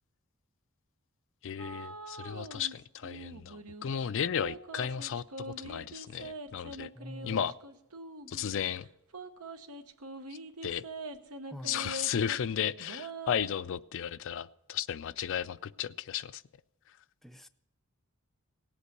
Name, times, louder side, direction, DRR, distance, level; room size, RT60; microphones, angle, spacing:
voice 1, 1.4-6.9 7.2-7.5 8.3-8.9 10.6-10.8 11.7-16.4, left 8 dB, 60° left, 13 dB, 0.4 m, -34 dB
sound 1, 1.6-2.7 3.0-3.8 4.4-8.6 9.1-12.5 12.8-13.6, right 2 dB, 80° right, 1.0 m, -43 dB
voice 2, 6.9-7.5 11.5-11.9 17.2-17.5, equal, ahead, 8 dB, 0.5 m, -45 dB
17.5 x 8.3 x 6.6 m, 0.94 s
head